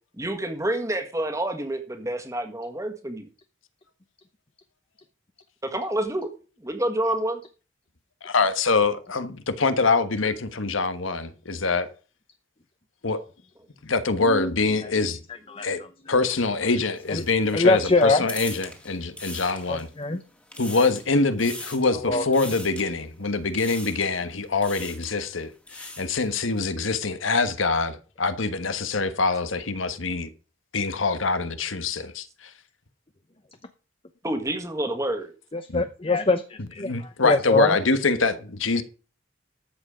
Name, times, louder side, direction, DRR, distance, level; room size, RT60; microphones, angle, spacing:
voice 1, 0.2-3.3 5.6-6.3 6.6-7.4 34.2-35.3, right 1 dB, 15° right, 1.7 m, -28 dB
voice 2, 8.2-11.9 13.0-13.2 13.8-15.2 15.6-15.8 16.1-19.9 20.6-30.3 30.7-32.5 35.7-35.8 36.6-38.8, left 3 dB, 80° left, 1.3 m, -24 dB
sound 1, 17.0-20.0 20.4-21.1 21.4-22.0 22.3-22.9 23.5-24.2 24.5-25.1 25.5-26.3, left 2 dB, 5° left, 1.9 m, -40 dB
voice 3, 17.5-18.2 19.7-20.2 21.9-22.2 35.5-36.9 37.2-37.8, left 3 dB, 25° left, 0.8 m, -23 dB
13.5 x 7.9 x 5.0 m
head